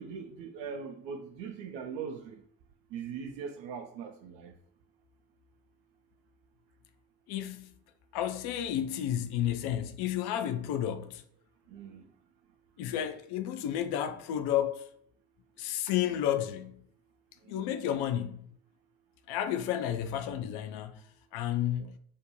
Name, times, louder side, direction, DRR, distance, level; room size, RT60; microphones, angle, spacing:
voice 1, 0.0-2.4 2.9-4.6 11.7-12.1 17.4-17.7 21.8-21.9, right 6 dB, 65° right, 0.5 m, -41 dB
voice 2, 7.3-7.7 8.1-11.2 12.8-14.9 15.6-16.8 17.5-18.5 19.3-22.0, left 10 dB, 55° left, 0.5 m, -32 dB
2.5 x 2.1 x 2.9 m
figure-of-eight pair, 40°, 48 cm